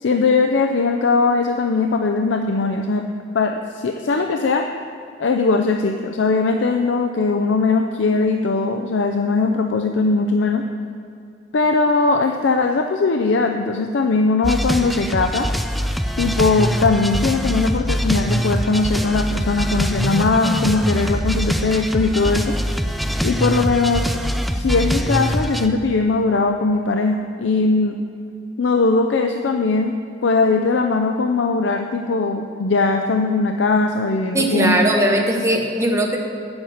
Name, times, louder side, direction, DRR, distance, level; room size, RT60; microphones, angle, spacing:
voice 1, 0.0-3.1 3.3-4.7 5.2-10.6 11.5-15.5 16.2-22.5 23.2-24.1 24.5-28.0 28.6-29.9 30.2-34.9, left 3 dB, 85° left, 5 dB, 0.5 m, -19 dB
sound 1, 14.4-25.7, equal, ahead, 0.3 m, -23 dB
voice 2, 34.3-36.2, right 1 dB, 15° right, 0 dB, 1.1 m, -19 dB
9.3 x 7.9 x 5.7 m, 2.6 s
head